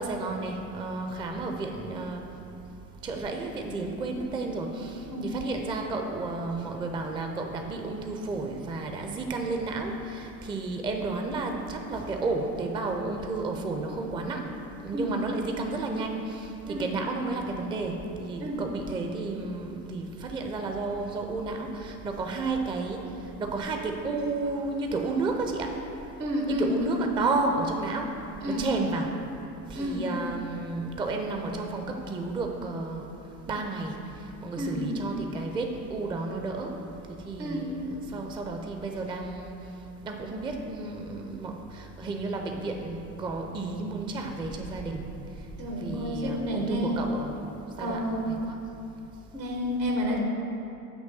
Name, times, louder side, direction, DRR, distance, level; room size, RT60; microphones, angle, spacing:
voice 1, 0.0-2.3 3.0-14.5 14.8-25.7 26.5-28.2 28.5-29.1 29.7-33.1 33.5-36.8 37.1-39.5 40.0-45.1 45.8-47.4 47.8-48.0 48.3-48.6, right 3 dB, 10° right, 3 dB, 0.4 m, -32 dB
voice 2, 26.2-27.0 28.4-28.7 29.7-30.1 34.6-34.9 37.4-37.7 45.6-47.1 47.8-48.4 49.3-50.2, equal, 80° right, 0 dB, 1.2 m, -30 dB
8.3 x 3.1 x 6.5 m, 2.8 s
figure-of-eight pair, 65°, 50 cm